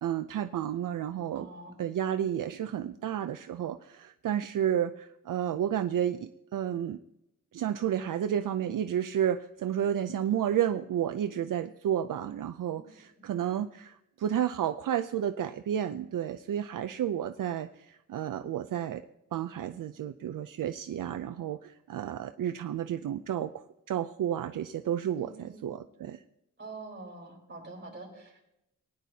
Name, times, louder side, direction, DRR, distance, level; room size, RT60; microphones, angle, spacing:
voice 1, 0.0-1.5 1.8-7.0 7.5-19.0 19.3-26.2, right 10 dB, 75° right, 9 dB, 0.5 m, -31 dB
voice 2, 1.3-1.7 25.2-25.6 26.6-28.4, right 2 dB, 35° right, -2 dB, 4.0 m, -45 dB
20.5 x 10.0 x 2.8 m, 0.86 s
wide cardioid pair, 175°, 33 cm